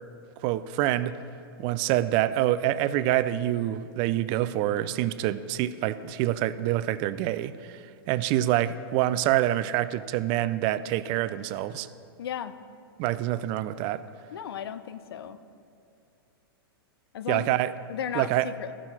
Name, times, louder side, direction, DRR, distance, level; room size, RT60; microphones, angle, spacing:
voice 1, 0.4-1.2 1.6-11.9 13.0-14.0 17.3-17.7 18.1-18.5, right 13 dB, 40° right, 14 dB, 0.4 m, -26 dB
voice 2, 12.2-12.6 14.3-15.4 17.1-17.6 17.9-18.7, left 9 dB, 75° left, 12 dB, 0.5 m, -35 dB
14.5 x 6.2 x 4.3 m, 2.5 s
hypercardioid pair, 120°, 13 cm